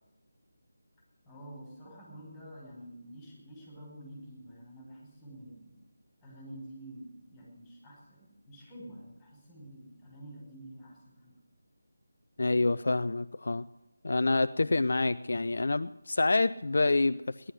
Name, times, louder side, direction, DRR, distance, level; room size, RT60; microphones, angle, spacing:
voice 1, 1.2-5.8 6.2-11.3, right 1 dB, 10° left, -2 dB, 5.0 m, -48 dB
voice 2, 12.4-13.6 14.0-17.5, left 3 dB, 60° left, 12 dB, 0.4 m, -27 dB
17.0 x 11.0 x 6.5 m, 1.0 s
figure-of-eight pair, 160°, 0 cm